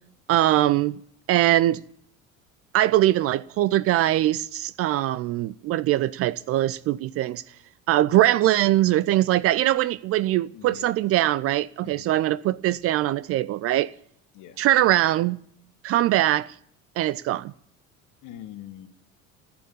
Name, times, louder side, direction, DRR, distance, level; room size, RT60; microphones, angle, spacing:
voice 1, 0.3-1.0 1.3-1.8 2.7-7.4 7.9-13.9 14.6-15.4 15.8-16.5 17.0-17.5, right 14 dB, 35° right, 0.5 m, -22 dB
voice 2, 10.5-10.9 11.8-12.1 14.3-14.6 18.2-18.9, left 12 dB, 45° left, 1.7 m, -43 dB
16.0 x 8.6 x 8.8 m
figure-of-eight pair, 60°, 41 cm